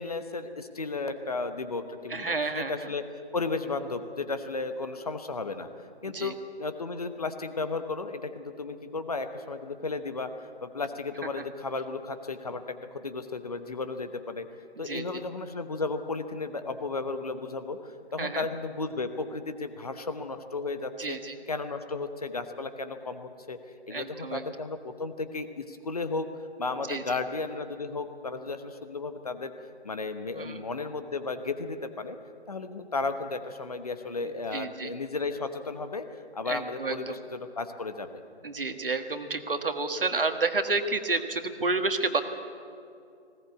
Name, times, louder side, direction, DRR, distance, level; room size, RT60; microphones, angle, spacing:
voice 1, 0.0-3.0 3.3-5.7 6.0-14.5 14.8-21.2 21.5-23.6 23.9-26.3 26.6-29.5 29.8-32.2 32.5-38.2, left 3 dB, 35° left, 9 dB, 1.0 m, -34 dB
voice 2, 2.1-2.9 6.0-6.3 11.3-11.4 14.8-15.0 18.2-18.4 21.0-21.3 23.9-24.4 26.9-27.0 30.3-30.6 34.2-34.9 36.4-37.2 38.4-42.2, right 3 dB, 55° right, 7 dB, 1.7 m, -30 dB
20.0 x 17.5 x 8.2 m, 2.5 s
figure-of-eight pair, 160°, 33 cm